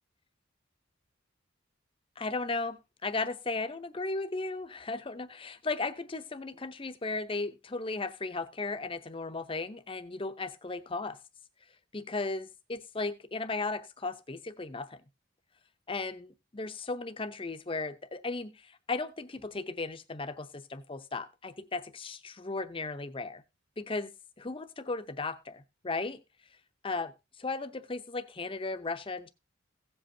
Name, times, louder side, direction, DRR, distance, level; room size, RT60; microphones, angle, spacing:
voice 1, 2.2-11.2 11.9-15.0 15.9-23.4 23.8-26.2 26.8-29.3, left 3 dB, 25° left, 0.7 m, -36 dB
16.5 x 7.7 x 2.7 m
head